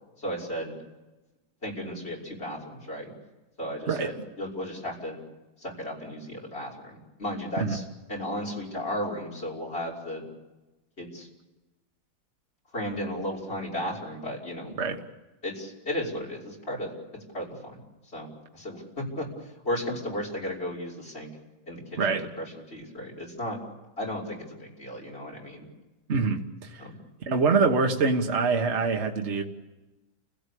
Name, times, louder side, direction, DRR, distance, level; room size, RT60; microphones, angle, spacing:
voice 1, 0.2-0.7 1.6-3.1 3.6-4.1 4.4-5.2 5.6-7.8 8.1-10.2 11.0-11.3 12.7-14.8 15.4-16.9 17.3-17.8 18.1-21.3 21.7-22.4 22.7-23.6 24.0-25.6 26.8-27.0, equal, 35° left, -2 dB, 6.0 m, -34 dB
voice 2, 3.9-4.2 7.6-7.8 14.8-15.0 22.0-22.3 26.1-26.8 27.2-29.4, right 4 dB, 40° right, 3 dB, 1.7 m, -25 dB
30.0 x 17.5 x 8.5 m, 1.1 s
omnidirectional pair, 1.9 m